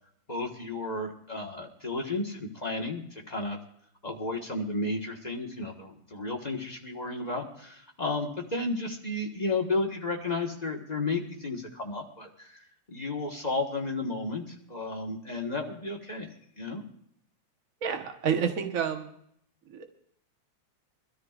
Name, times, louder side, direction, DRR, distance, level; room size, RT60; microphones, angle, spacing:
voice 1, 0.3-3.6 4.0-16.3 16.6-16.8, left 2 dB, 40° left, 0 dB, 0.5 m, -33 dB
voice 2, 17.8-19.1 19.8-19.9, right 7 dB, 65° right, 5 dB, 0.8 m, -28 dB
24.5 x 13.5 x 2.5 m, 0.70 s
omnidirectional pair, 3.3 m